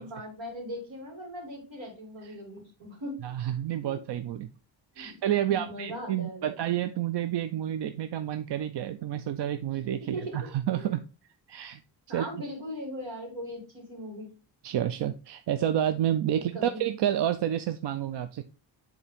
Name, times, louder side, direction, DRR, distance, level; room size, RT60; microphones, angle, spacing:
voice 1, 0.0-3.1 3.8-3.9 4.9-5.2 5.4-6.5 10.0-10.5 10.8-10.9 12.1-14.3 16.3-16.9, equal, 80° right, 0 dB, 2.9 m, -39 dB
voice 2, 3.2-4.5 5.0-11.0 11.5-11.8 12.1-12.4 14.6-18.4, right 11 dB, 60° right, 11 dB, 0.5 m, -29 dB
7.1 x 4.0 x 3.5 m, 0.33 s
cardioid pair, 70°, 46 cm